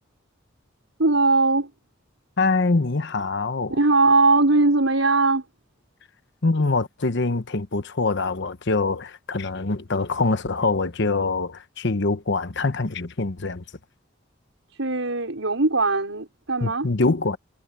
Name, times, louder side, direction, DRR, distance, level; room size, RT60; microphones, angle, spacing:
voice 1, 1.0-1.7 3.7-5.4 14.8-16.9, right 3 dB, 80° right, 5.4 m, -20 dB
voice 2, 2.4-3.8 6.4-13.6 16.6-17.4, left 3 dB, 65° left, 1.1 m, -24 dB
head